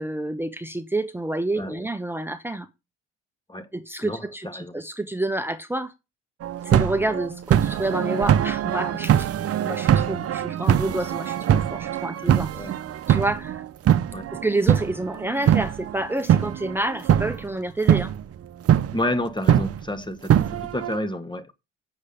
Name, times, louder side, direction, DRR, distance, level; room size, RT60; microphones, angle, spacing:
voice 1, 0.0-2.7 3.7-5.9 6.6-9.3 9.6-12.7 13.1-13.6 14.3-18.1, right 2 dB, 5° right, 1.1 m, -28 dB
voice 2, 1.6-1.9 3.5-3.7 4.0-4.7 12.5-12.7 14.1-14.3 18.9-21.5, left 1 dB, 15° left, 1.5 m, -30 dB
sound 1, 6.4-16.7 17.0-17.5 17.9-18.2 18.7-19.0 19.5-19.8 20.3-21.0, right 10 dB, 50° right, 0.8 m, -22 dB
8.1 x 7.2 x 5.2 m
hypercardioid pair, 60°, 30 cm